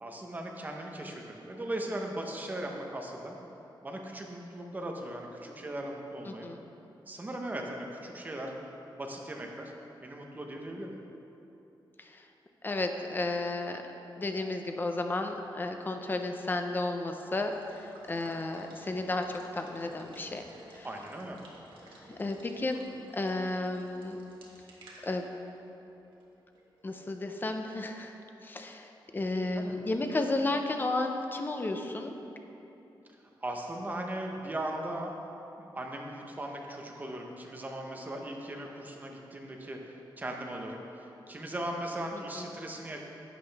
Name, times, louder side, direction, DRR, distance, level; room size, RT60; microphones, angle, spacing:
voice 1, 0.0-3.4 3.8-6.5 7.1-8.5 8.9-9.7 10.0-11.0 20.8-21.4 29.6-29.7 33.1-35.1 35.6-43.0, right 1 dB, 20° right, 1 dB, 0.9 m, -38 dB
voice 2, 6.3-6.6 12.0-12.3 12.6-13.8 14.2-20.4 20.7-20.9 21.9-24.2 25.0-25.3 26.8-32.1 42.1-42.4, left 2 dB, 25° left, 4 dB, 0.6 m, -33 dB
Water / Water tap faucet / Liquid, 17.2-26.8, right 1 dB, 85° right, 1.5 m, -55 dB
11.0 x 8.4 x 3.4 m, 3.0 s
wide cardioid pair, 175°, 8 cm